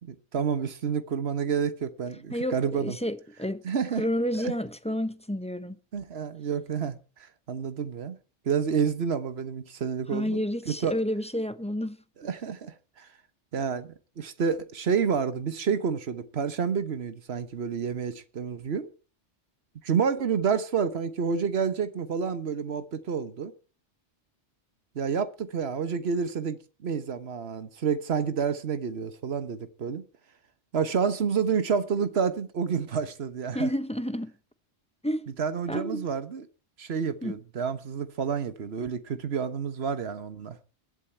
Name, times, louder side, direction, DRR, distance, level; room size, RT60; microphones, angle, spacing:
voice 1, 0.0-3.0 3.6-4.0 4.4-4.5 5.9-7.0 7.5-8.2 8.4-11.0 12.2-13.1 13.5-18.9 19.8-23.5 24.9-30.0 30.7-33.7 35.4-36.5 36.8-40.6, right 6 dB, 65° right, 1.4 m, -29 dB
voice 2, 2.3-3.6 4.0-5.8 10.1-12.0 33.5-34.3 35.0-35.3 35.7-36.0 37.2-37.3, equal, 5° left, 0.8 m, -30 dB
22.5 x 7.7 x 4.5 m
omnidirectional pair, 1.2 m